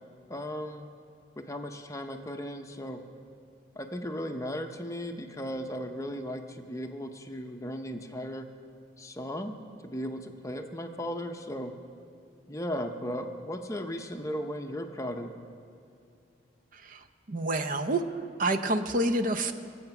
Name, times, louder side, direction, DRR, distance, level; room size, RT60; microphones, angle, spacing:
voice 1, 0.3-0.9 1.4-3.0 3.8-8.5 9.0-11.8 12.5-15.3, equal, 15° left, 5 dB, 0.7 m, -36 dB
voice 2, 17.3-18.0 18.4-19.5, right 2 dB, 45° right, 8 dB, 0.7 m, -28 dB
23.5 x 7.9 x 6.0 m, 2.7 s
head